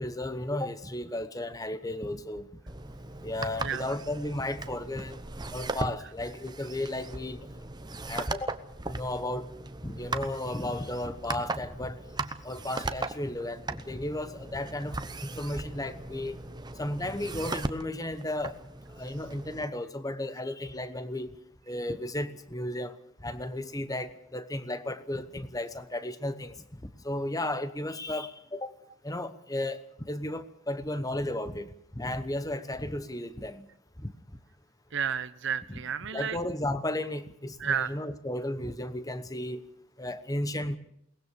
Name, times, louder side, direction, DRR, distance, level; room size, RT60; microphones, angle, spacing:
voice 1, 0.0-2.5 3.2-5.2 5.5-7.5 8.1-8.5 8.9-9.4 9.8-12.0 12.4-15.0 15.2-16.4 16.8-18.6 19.0-21.3 21.7-23.0 23.2-26.5 27.0-28.7 29.0-29.8 30.1-31.7 31.9-33.7 34.0-34.1 35.7-35.8 36.1-39.6 40.0-40.8, left 1 dB, 15° left, 1.0 m, -34 dB
sound 1, 2.7-19.6, right 2 dB, 20° right, 0.9 m, -38 dB
voice 2, 3.6-3.9 34.9-36.4 37.6-38.0, right 7 dB, 55° right, 0.7 m, -31 dB
22.5 x 19.5 x 6.8 m
head